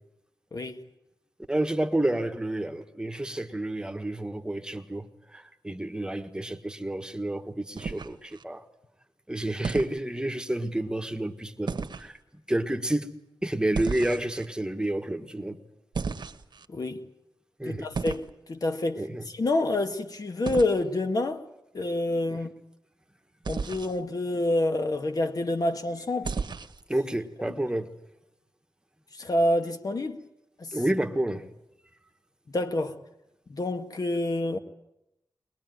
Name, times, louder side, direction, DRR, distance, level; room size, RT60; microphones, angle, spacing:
voice 1, 1.5-8.6 9.3-12.2 12.5-13.1 13.4-15.6 17.6-17.9 19.0-19.2 26.9-27.9 30.7-31.5, right 1 dB, 10° right, 1.5 m, -30 dB
sound 1, 7.8-8.4 9.6-10.0 11.7-12.1 13.7-14.5 15.9-16.7 17.9-18.3 20.5-20.7 23.4-24.0 26.2-26.8, right 5 dB, 65° right, 1.4 m, -33 dB
voice 2, 16.7-17.0 17.7-21.4 21.7-22.5 23.5-26.3 27.5-27.6 29.1-30.2 30.6-30.8 32.5-33.0 33.5-34.6, left 1 dB, 50° left, 1.9 m, -28 dB
22.0 x 22.0 x 9.3 m
wide cardioid pair, 110°, 8 cm